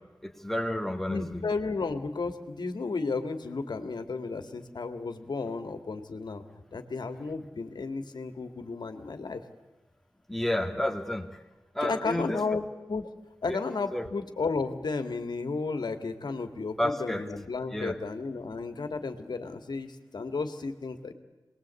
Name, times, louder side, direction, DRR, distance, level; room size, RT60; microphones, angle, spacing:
voice 1, 0.2-1.5 10.3-11.4 11.7-12.4 13.5-13.6 13.9-14.1 16.8-17.2 17.7-18.0, left 1 dB, 5° left, 5 dB, 2.2 m, -30 dB
voice 2, 1.1-6.4 6.7-9.4 11.8-13.1 13.4-21.1, left 4 dB, 70° left, 8 dB, 2.2 m, -33 dB
27.0 x 20.5 x 8.4 m, 1.1 s
wide cardioid pair, 100°, 8 cm